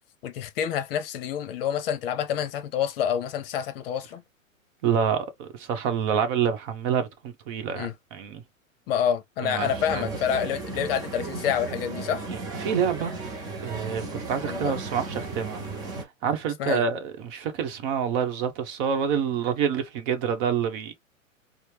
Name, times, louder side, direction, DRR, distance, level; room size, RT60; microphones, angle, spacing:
voice 1, 0.2-4.2 7.8-7.9 8.9-12.2 14.5-14.7 16.6-16.8, left 9 dB, 45° left, 0.7 m, -28 dB
voice 2, 4.8-8.4 9.4-10.0 12.3-13.2 13.6-15.6 16.0-20.9, right 7 dB, 40° right, 1.0 m, -27 dB
sound 1, 9.6-16.0, right 3 dB, 10° right, 0.4 m, -35 dB
4.3 x 2.1 x 3.3 m
hypercardioid pair, 120°, 41 cm